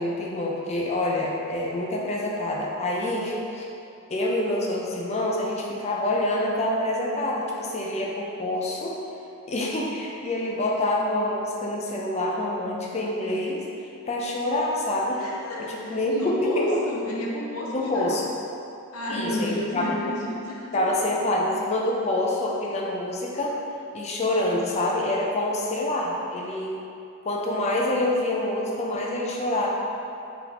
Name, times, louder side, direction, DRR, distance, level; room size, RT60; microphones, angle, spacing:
voice 1, 0.0-3.6 4.1-9.0 9.5-13.6 14.0-15.2 15.7-16.1 16.4-16.8 17.7-18.2 19.1-20.0 20.7-23.6 23.9-26.8 27.2-29.7, left 1 dB, 30° left, -2 dB, 0.4 m, -26 dB
voice 2, 15.2-18.2 18.9-21.1, left 1 dB, 75° left, -3 dB, 0.7 m, -31 dB
4.0 x 3.4 x 2.9 m, 2.6 s
head